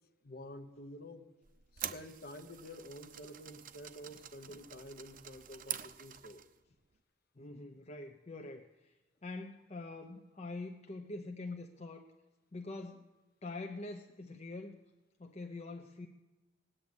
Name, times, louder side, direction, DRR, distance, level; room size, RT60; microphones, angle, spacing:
voice 1, 0.2-1.3 1.7-6.4, left 1 dB, 50° left, 9 dB, 1.1 m, -49 dB
sound 1, 1.4-6.6, right 10 dB, 45° right, 0.7 m, -46 dB
voice 2, 7.4-9.0 9.2-12.1 12.5-13.1 13.4-14.8 15.2-16.1, left 2 dB, 35° left, 4 dB, 0.7 m, -44 dB
19.0 x 8.9 x 7.9 m, 1.1 s
head